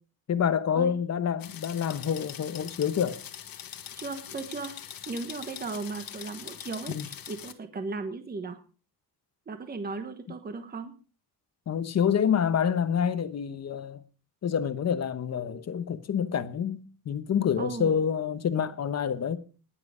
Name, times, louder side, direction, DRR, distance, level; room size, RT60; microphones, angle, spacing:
voice 1, 0.3-3.2 6.9-7.1 11.7-14.0 14.4-19.4, left 8 dB, 40° left, 1.1 m, -27 dB
sound 1, 1.4-7.5, left 10 dB, 60° left, 1.5 m, -43 dB
voice 2, 3.9-4.8 5.1-8.6 9.5-10.9 17.6-17.9, right 4 dB, 25° right, 1.3 m, -36 dB
20.0 x 7.7 x 5.0 m
cardioid pair, 160°, 39 cm